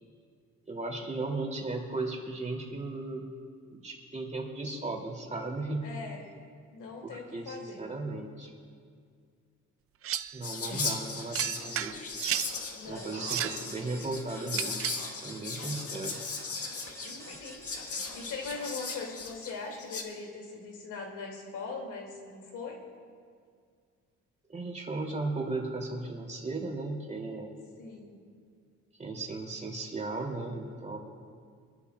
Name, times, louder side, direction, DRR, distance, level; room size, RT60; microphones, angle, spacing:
voice 1, 0.7-3.3 3.7-5.9 7.0-8.5 10.3-12.0 12.8-14.9 15.2-16.2 24.5-27.5 29.0-31.0, right 2 dB, 25° right, 0 dB, 2.7 m, -36 dB
voice 2, 5.8-6.3 6.7-7.9 12.7-13.2 17.0-17.6 18.1-22.8 27.8-28.2, left 4 dB, 85° left, 0 dB, 2.5 m, -41 dB
sound 1, 10.0-10.4 11.3-12.5 13.1-13.7 14.5-15.1, right 11 dB, 50° right, 0.5 m, -33 dB
Whispering, 10.4-20.0, left 4 dB, 50° left, 1.6 m, -38 dB
sound 2, 12.9-18.5, right 1 dB, 10° left, 2.4 m, -49 dB
24.5 x 11.5 x 2.4 m, 2.1 s
cardioid pair, 90°, 30 cm